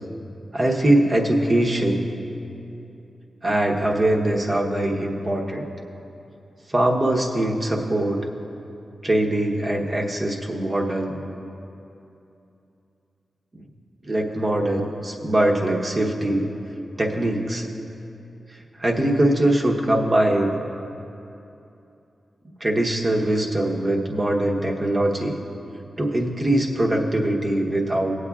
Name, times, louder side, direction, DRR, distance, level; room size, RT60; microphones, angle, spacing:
voice 1, 0.5-2.0 3.4-5.7 6.7-8.3 9.0-11.2 13.5-13.6 14.0-16.5 17.0-17.7 18.8-20.6 22.6-25.4 26.0-28.1, right 1 dB, 35° right, 0 dB, 1.0 m, -22 dB
20.0 x 8.2 x 2.4 m, 2.8 s
wide cardioid pair, 90°, 0 cm